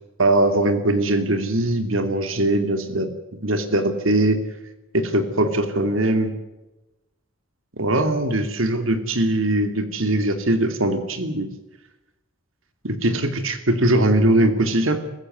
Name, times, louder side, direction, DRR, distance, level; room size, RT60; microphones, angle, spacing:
voice 1, 0.2-3.1 3.4-4.4 4.9-6.3 7.8-11.5 12.8-15.0, right 1 dB, 80° right, 8 dB, 2.7 m, -21 dB
23.5 x 15.0 x 9.7 m, 1.0 s
head